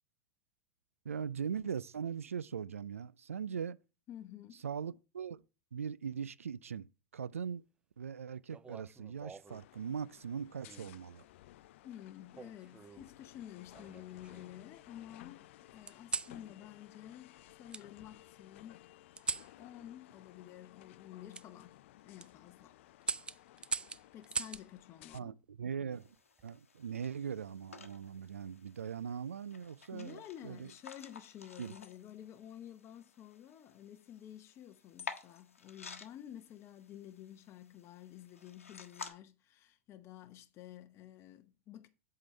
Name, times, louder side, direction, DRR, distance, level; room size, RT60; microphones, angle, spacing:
voice 1, 1.0-3.8 4.6-5.4 5.7-6.9 7.1-7.6 8.0-11.2 25.1-26.2 26.4-30.7 31.6-31.7, right 7 dB, 90° right, 0.4 m, -40 dB
voice 2, 4.1-4.6 11.8-15.5 15.7-18.9 19.6-21.8 22.0-22.8 24.1-25.3 29.9-41.9, left 11 dB, 35° left, 0.8 m, -51 dB
sound 1, 8.5-9.6 10.7-11.1 12.3-13.1 13.7-14.6 15.9-16.4 17.7-17.9 19.2-19.5 21.3-21.5 22.0-22.3 23.0-24.7 26.2-26.6, right 5 dB, 15° right, 0.4 m, -41 dB
sound 2, 9.5-25.2, left 15 dB, 65° left, 0.4 m, -58 dB
sound 3, 25.9-39.1, left 5 dB, 90° left, 1.0 m, -52 dB
8.1 x 3.8 x 5.6 m
hypercardioid pair, 100°, 7 cm